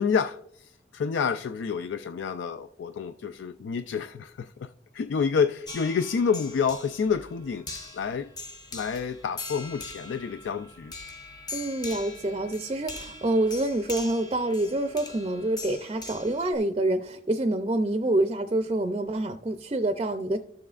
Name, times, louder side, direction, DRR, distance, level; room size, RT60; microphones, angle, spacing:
voice 1, 0.0-8.3 8.7-10.9, left 6 dB, 90° left, 11 dB, 0.3 m, -29 dB
sound 1, 5.7-16.5, left 3 dB, 20° left, 0.8 m, -42 dB
voice 2, 11.5-20.4, right 1 dB, 30° right, 7 dB, 0.4 m, -27 dB
13.5 x 7.1 x 2.4 m, 0.69 s
head